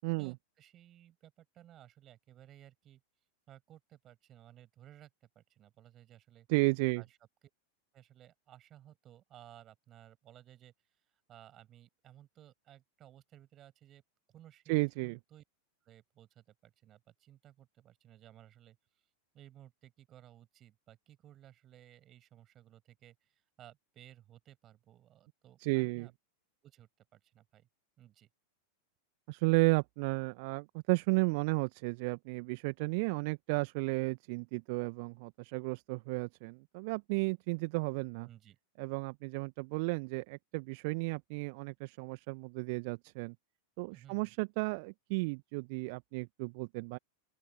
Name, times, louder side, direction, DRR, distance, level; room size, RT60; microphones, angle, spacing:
voice 1, 0.2-3.0 3.5-6.5 7.0-7.1 7.9-14.0 14.3-14.7 15.0-15.4 15.8-18.8 19.3-26.1 26.6-27.7 28.0-28.3 38.2-38.6 43.9-44.3, right 12 dB, 30° right, 7.7 m, -58 dB
voice 2, 6.5-7.0 14.7-15.2 25.6-26.1 29.3-38.3 38.8-43.3 43.8-47.0, right 29 dB, 45° right, 1.3 m, -33 dB
open air
figure-of-eight pair, 90°, 0 cm